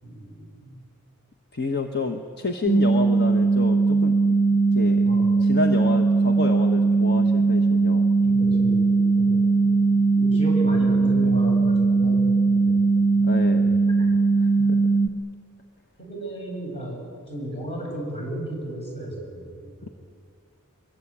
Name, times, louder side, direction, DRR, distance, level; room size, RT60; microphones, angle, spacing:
voice 1, 0.0-0.8 5.0-5.3 8.2-8.9 9.2-12.8 13.1-13.3 13.5-14.1 16.0-19.9, right 1 dB, 25° left, -1 dB, 7.6 m, -34 dB
voice 2, 1.5-4.3 4.7-5.0 5.4-8.1 13.2-13.7 14.4-14.8 19.8-19.9, left 3 dB, 50° left, 5 dB, 1.3 m, -29 dB
sound 1, 2.7-15.1, right 3 dB, 5° right, 0.9 m, -19 dB
24.0 x 23.0 x 8.9 m, 2.2 s
head